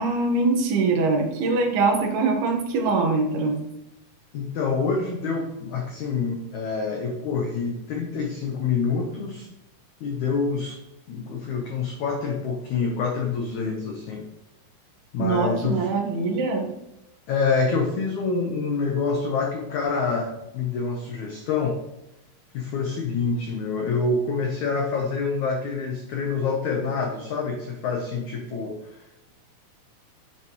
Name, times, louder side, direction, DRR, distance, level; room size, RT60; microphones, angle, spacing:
voice 1, 0.0-3.6 15.2-16.7, right 3 dB, 70° right, 1 dB, 3.3 m, -23 dB
voice 2, 4.3-9.5 10.0-10.8 11.1-14.3 15.1-15.9 17.3-21.8 22.5-29.3, left 4 dB, 80° left, 1 dB, 1.7 m, -27 dB
10.5 x 6.1 x 3.1 m, 0.87 s
omnidirectional pair, 4.8 m